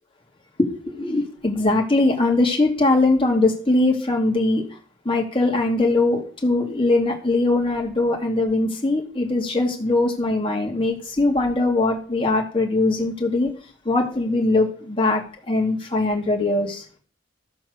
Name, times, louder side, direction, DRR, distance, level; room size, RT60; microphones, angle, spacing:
voice 1, 0.6-4.6 5.1-13.5 13.9-15.2 15.5-16.8, left 2 dB, 25° left, 0 dB, 2.4 m, -21 dB
14.5 x 7.2 x 6.5 m, 0.43 s
head